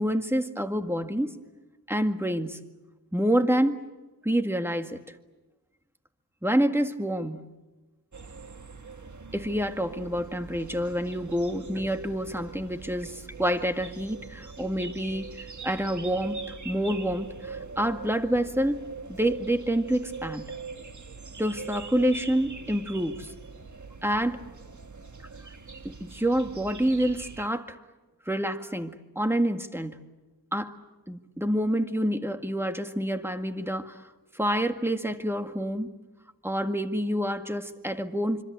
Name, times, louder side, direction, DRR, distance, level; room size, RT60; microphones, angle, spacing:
voice 1, 0.0-1.3 1.9-2.6 3.1-3.8 4.2-5.0 6.4-7.5 9.3-18.8 19.1-20.6 21.4-23.3 24.0-24.4 25.8-27.8 28.3-30.0 30.5-30.8 31.1-34.0 34.3-35.9 36.4-38.4, equal, 5° right, 6 dB, 1.9 m, -27 dB
sound 1, 8.1-27.5, right 5 dB, 50° right, 1.4 m, -42 dB
25.5 x 25.5 x 8.5 m, 1.2 s
wide cardioid pair, 60°, 37 cm